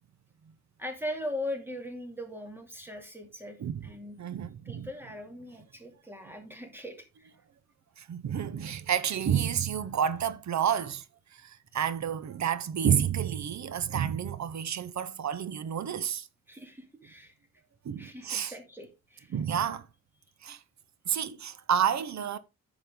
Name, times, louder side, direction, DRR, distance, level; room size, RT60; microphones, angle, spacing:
voice 1, 0.8-4.2 4.6-7.3 16.5-17.3 18.0-19.4, left 1 dB, 5° right, 2.6 m, -40 dB
voice 2, 3.6-3.9 4.2-4.9 8.0-11.0 11.3-16.3 17.8-18.5 19.3-19.9 20.4-20.6 21.1-22.4, right 8 dB, 70° right, 0.8 m, -30 dB
10.5 x 7.0 x 3.7 m
wide cardioid pair, 125°, 29 cm